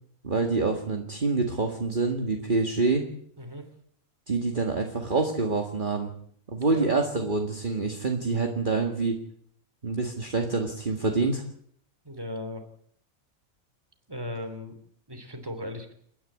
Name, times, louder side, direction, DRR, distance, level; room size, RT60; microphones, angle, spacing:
voice 1, 0.2-3.0 4.3-6.1 6.5-9.2 9.8-11.4, right 3 dB, 35° right, 2 dB, 2.1 m, -26 dB
voice 2, 3.4-3.7 6.6-6.9 12.0-12.6 14.1-14.8 15.1-15.9, left 1 dB, 15° right, 7 dB, 3.0 m, -37 dB
29.5 x 10.5 x 8.6 m, 0.66 s
omnidirectional pair, 1.5 m